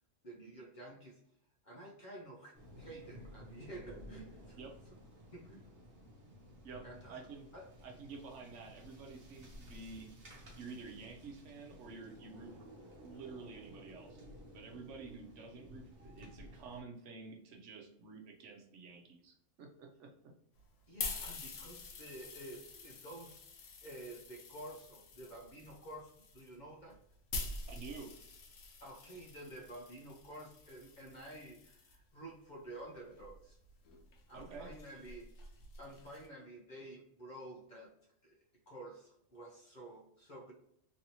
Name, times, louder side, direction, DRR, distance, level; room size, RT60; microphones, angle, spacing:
voice 1, 0.2-1.2 1.6-4.6 5.3-5.7 6.8-7.2 7.5-7.7 20.9-27.0 28.8-33.6 34.3-35.3 35.8-37.9 38.2-38.4 38.7-40.5, right 1 dB, 45° left, -1 dB, 0.7 m, -50 dB
sound 1, 2.5-16.8, equal, 50° right, 1.1 m, -55 dB
voice 2, 7.1-7.5 7.8-10.1 10.6-12.6 13.0-14.3 14.5-20.1 27.7-28.1 34.3-34.7, right 4 dB, 75° right, 2 dB, 1.0 m, -50 dB
sound 2, 20.6-32.0 32.7-36.3, left 3 dB, 85° left, 1.1 m, -47 dB
3.1 x 2.7 x 2.9 m, 0.74 s
omnidirectional pair, 1.3 m